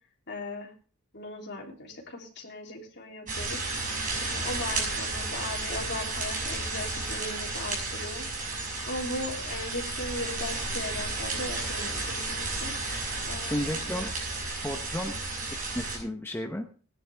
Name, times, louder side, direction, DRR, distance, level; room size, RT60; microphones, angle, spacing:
voice 1, 0.3-0.7 1.1-3.9 4.2-8.3 8.9-12.7 13.3-13.8, left 1 dB, 50° left, 1 dB, 3.4 m, -38 dB
sound 1, 3.3-16.0, right 3 dB, 35° right, 6.2 m, -33 dB
voice 2, 13.5-14.1 14.6-15.2 15.7-16.7, equal, 10° left, 3 dB, 1.0 m, -32 dB
18.5 x 10.5 x 3.5 m, 0.39 s
head